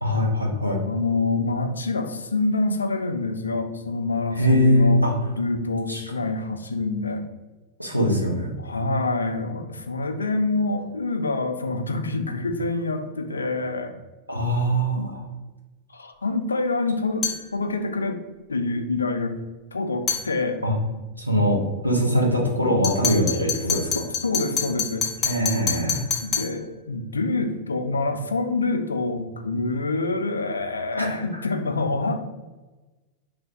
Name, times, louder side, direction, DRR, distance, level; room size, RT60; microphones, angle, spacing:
voice 1, 0.0-0.8 4.4-5.1 5.9-6.0 7.8-8.5 14.3-15.2 20.6-20.7 21.2-23.9 25.2-26.0 31.0-31.1, equal, 90° right, -1 dB, 0.6 m, -22 dB
voice 2, 0.8-7.2 8.1-13.9 14.7-15.1 15.9-18.2 18.5-19.3 19.7-20.6 20.9-21.0 22.0-22.4 23.9-25.1 26.2-32.3, left 3 dB, 75° left, 7 dB, 0.3 m, -26 dB
sound 1, 17.2-17.5 20.1-20.3 22.8-26.6, left 6 dB, 25° left, 0.7 m, -27 dB
3.2 x 2.2 x 3.4 m, 1.2 s
figure-of-eight pair, 90°, 0 cm